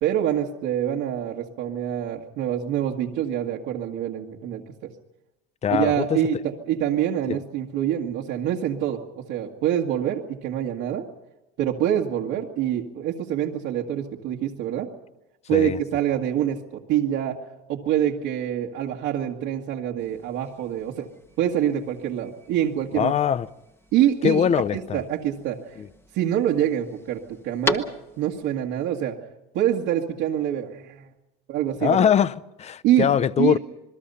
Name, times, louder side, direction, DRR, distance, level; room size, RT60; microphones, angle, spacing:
voice 1, 0.0-4.9 5.7-11.1 11.6-14.9 15.5-17.4 17.7-21.1 21.4-23.1 23.9-25.6 26.1-27.9 28.2-29.2 29.5-31.1 31.5-32.1 32.8-33.1 33.4-33.6, right 11 dB, 80° right, 1.9 m, -25 dB
voice 2, 5.6-6.2 7.3-7.4 15.5-15.8 22.9-23.5 24.2-25.0 25.8-25.9 31.8-33.6, left 8 dB, 30° left, 0.7 m, -22 dB
sound 1, 20.0-28.5, left 1 dB, 10° left, 1.4 m, -37 dB
27.5 x 21.0 x 5.6 m
cardioid pair, 130°, 21 cm